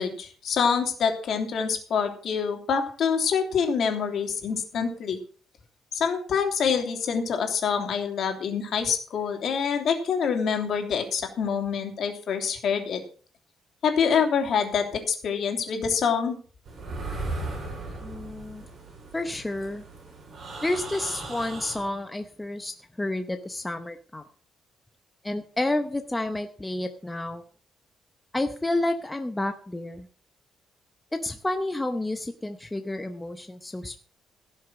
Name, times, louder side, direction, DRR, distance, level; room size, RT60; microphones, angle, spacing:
voice 1, 0.0-5.2 5.9-13.0 13.8-16.4, left 6 dB, 55° left, 4 dB, 3.1 m, -26 dB
sound 1, 16.6-21.9, right 2 dB, 45° right, 5.3 m, -37 dB
voice 2, 18.0-18.7 19.1-19.8 20.6-24.2 25.2-27.4 28.3-30.1 31.1-34.0, left 2 dB, 10° left, 7 dB, 0.8 m, -30 dB
17.0 x 6.5 x 6.3 m, 0.42 s
cardioid pair, 145°, 0 cm